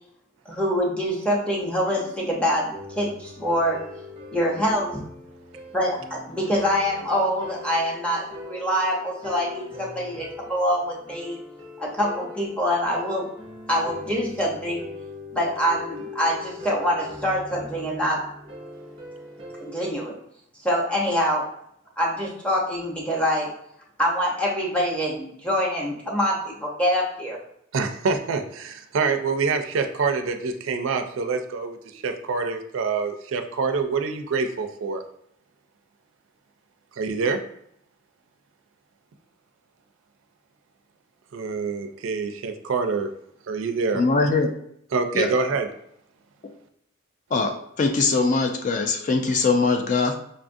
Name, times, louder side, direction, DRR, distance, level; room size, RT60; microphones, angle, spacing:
voice 1, 0.5-2.7 3.0-3.8 4.3-5.0 5.7-11.4 11.8-13.2 13.7-14.9 15.3-18.2 19.6-20.2 20.6-21.4 22.0-23.5 24.0-27.4, equal, 5° left, -3 dB, 0.7 m, -25 dB
sound 1, 1.6-19.9, left 2 dB, 25° right, 0.6 m, -41 dB
voice 2, 27.7-35.0 37.0-37.4 41.3-43.1 43.5-44.0 44.9-45.7, right 4 dB, 75° right, 6 dB, 0.4 m, -26 dB
voice 3, 43.9-44.5 45.1-45.3 47.3-50.2, left 4 dB, 35° left, 4 dB, 0.3 m, -22 dB
5.3 x 2.4 x 2.5 m, 0.72 s
head